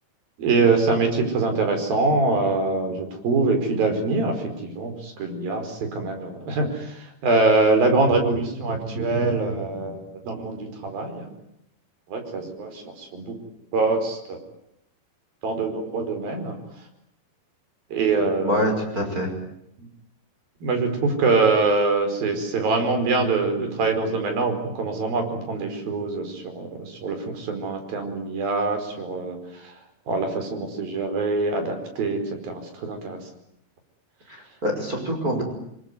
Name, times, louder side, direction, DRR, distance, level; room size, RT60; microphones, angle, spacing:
voice 1, 0.4-11.3 12.1-13.4 13.7-14.4 15.4-16.6 17.9-18.7 20.6-29.7 30.1-33.2, right 3 dB, 55° right, 5 dB, 6.6 m, -24 dB
voice 2, 18.4-19.3 34.3-35.4, equal, 20° right, 2 dB, 5.9 m, -25 dB
28.0 x 22.0 x 9.4 m, 0.76 s
omnidirectional pair, 5.0 m